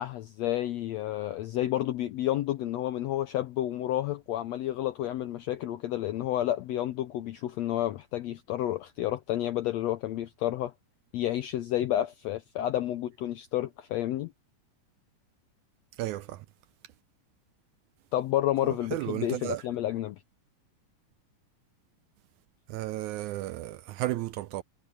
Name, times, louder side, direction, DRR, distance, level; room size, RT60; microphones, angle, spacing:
voice 1, 0.0-10.7 11.1-14.3 18.1-20.2, left 13 dB, 80° left, 1.5 m, -30 dB
voice 2, 16.0-16.4 18.9-19.6 22.7-24.6, right 15 dB, 80° right, 1.8 m, -33 dB
omnidirectional pair, 3.8 m